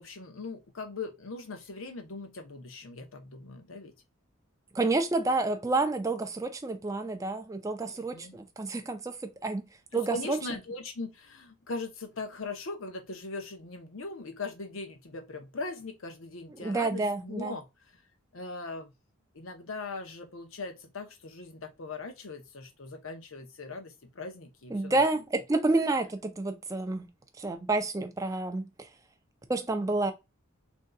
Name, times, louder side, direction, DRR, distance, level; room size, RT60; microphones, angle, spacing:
voice 1, 0.0-3.9 7.8-8.4 9.9-18.0 18.3-18.9 19.3-25.2, left 3 dB, 70° left, 0.7 m, -40 dB
voice 2, 4.7-9.2 9.4-9.6 9.9-10.4 16.6-17.6 24.7-27.1 27.4-28.9 29.5-30.1, right 2 dB, 15° right, 0.4 m, -29 dB
3.7 x 2.6 x 2.2 m
head